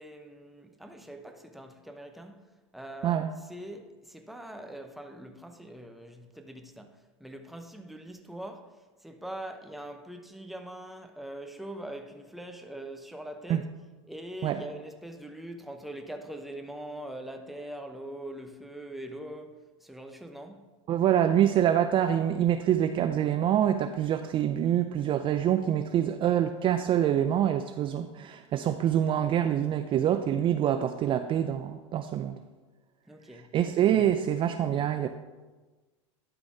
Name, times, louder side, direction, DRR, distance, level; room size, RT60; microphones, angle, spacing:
voice 1, 0.0-13.7 14.0-20.7 33.1-33.5, right 1 dB, ahead, 0.8 m, -43 dB
voice 2, 20.9-32.4 33.5-35.1, right 10 dB, 35° right, 0.4 m, -25 dB
11.5 x 4.1 x 5.0 m
hypercardioid pair, 105°, 16 cm